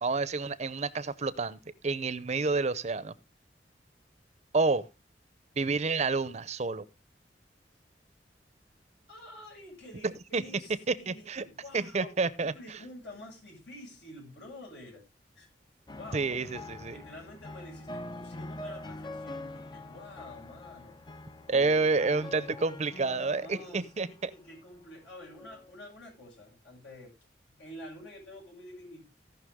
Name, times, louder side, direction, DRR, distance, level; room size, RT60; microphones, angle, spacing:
voice 1, 0.0-3.1 4.5-4.9 5.6-6.8 10.0-10.4 11.1-11.4 11.7-12.5 16.1-17.0 21.5-24.3, right 3 dB, 40° right, 0.7 m, -29 dB
voice 2, 9.1-15.0 15.3-15.5 15.9-16.3 16.9-21.0 23.4-27.1 27.5-29.1, left 1 dB, 75° left, 7.2 m, -48 dB
sound 1, 15.9-24.5 25.3-25.8, left 1 dB, 25° left, 0.6 m, -44 dB
17.5 x 6.0 x 3.6 m
head